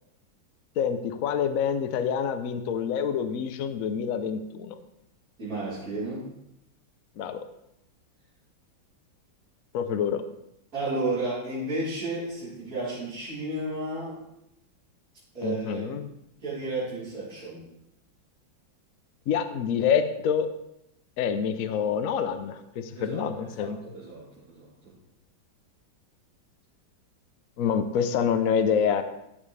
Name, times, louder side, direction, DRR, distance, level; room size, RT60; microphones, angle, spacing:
voice 1, 0.8-4.8 7.2-7.5 9.7-10.2 15.4-16.1 19.3-20.5 21.2-23.8 27.6-29.0, left 7 dB, 70° left, 9 dB, 0.8 m, -27 dB
voice 2, 5.4-6.3 10.7-14.2 15.3-15.9 16.4-17.6 22.9-23.3 23.5-24.9, right 2 dB, 45° right, -12 dB, 4.6 m, -32 dB
12.5 x 7.1 x 3.3 m, 0.81 s
omnidirectional pair, 2.2 m